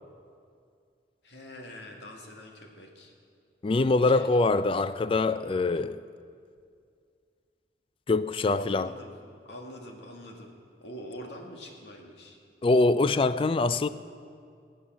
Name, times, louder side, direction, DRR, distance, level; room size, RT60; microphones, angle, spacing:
voice 1, 1.2-3.1 3.9-4.3 8.5-9.1 9.5-10.5 10.8-12.4 13.0-13.3, equal, 80° left, 2.1 m, -44 dB
voice 2, 3.6-6.0 8.1-8.9 12.6-13.9, left 3 dB, 30° left, 0.3 m, -24 dB
21.0 x 8.1 x 6.3 m
head